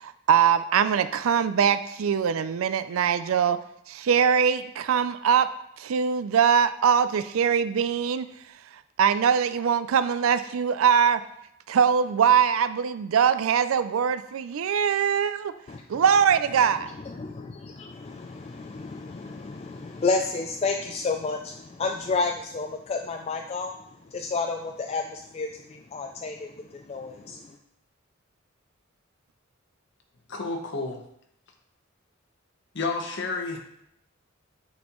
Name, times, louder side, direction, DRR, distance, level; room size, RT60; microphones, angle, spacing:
voice 1, 0.0-3.6 3.9-5.5 5.8-8.3 9.0-11.2 11.7-15.5 15.9-16.9, right 7 dB, 75° right, 12 dB, 0.4 m, -22 dB
voice 2, 15.7-16.0 17.0-23.7 24.0-27.6, left 4 dB, 30° left, 2 dB, 0.3 m, -31 dB
voice 3, 30.3-31.0 32.7-33.6, left 3 dB, 55° left, 3 dB, 0.9 m, -30 dB
9.3 x 4.3 x 3.0 m, 0.76 s
head